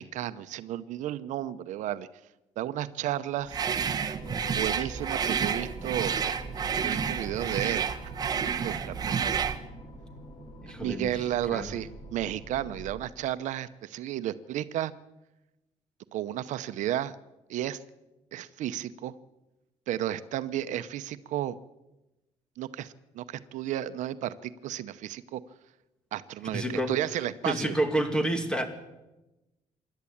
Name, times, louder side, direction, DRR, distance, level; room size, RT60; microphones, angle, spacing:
voice 1, 0.0-2.1 2.6-3.6 4.6-7.9 8.6-9.4 10.8-14.9 16.1-17.1 17.5-17.8 18.3-19.1 19.9-21.6 22.6-25.4 26.1-27.8, right 12 dB, 75° right, 13 dB, 0.8 m, -33 dB
sound 1, 3.5-9.6, right 7 dB, 30° right, 1.1 m, -30 dB
sound 2, 4.2-13.0, equal, 35° left, 3.5 m, -45 dB
voice 2, 10.6-11.2 11.5-11.8 26.5-26.9 27.4-28.7, right 1 dB, 5° left, 7 dB, 2.1 m, -29 dB
26.0 x 11.5 x 8.6 m, 1.0 s
cardioid pair, 160°, 13 cm